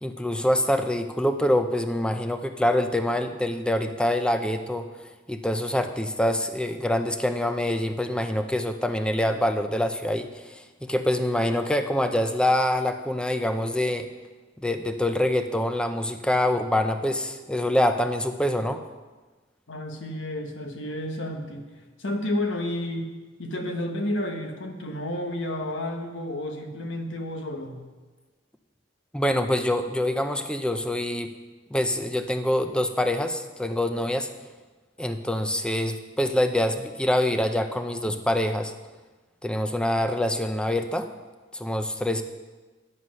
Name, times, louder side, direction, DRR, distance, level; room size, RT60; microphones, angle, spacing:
voice 1, 0.0-4.9 5.3-14.1 14.6-18.8 29.1-31.3 31.7-34.3 35.0-38.7 39.4-41.1 41.5-42.2, left 1 dB, 5° left, 7 dB, 0.6 m, -25 dB
voice 2, 19.7-23.1 23.4-27.8, left 1 dB, 75° left, 4 dB, 1.3 m, -31 dB
9.7 x 7.4 x 6.3 m, 1.3 s
head